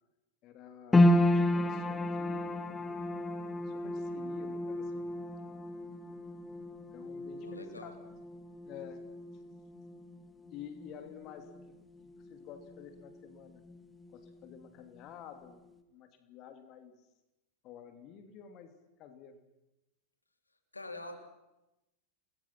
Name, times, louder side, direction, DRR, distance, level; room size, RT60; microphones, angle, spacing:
voice 1, 0.4-2.6 3.7-5.1 6.9-7.9 8.6-9.1 10.5-11.7 12.3-13.6 14.1-17.0 17.6-18.7 19.0-19.4, left 8 dB, 35° left, 7 dB, 2.9 m, -50 dB
sound 1, 0.9-13.3 13.6-14.5 15.0-15.1, left 1 dB, 10° left, 2.2 m, -32 dB
voice 2, 7.4-7.9 20.7-21.2, left 2 dB, 80° left, 5 dB, 3.2 m, -44 dB
29.5 x 21.5 x 6.0 m, 0.96 s
figure-of-eight pair, 90°, 0 cm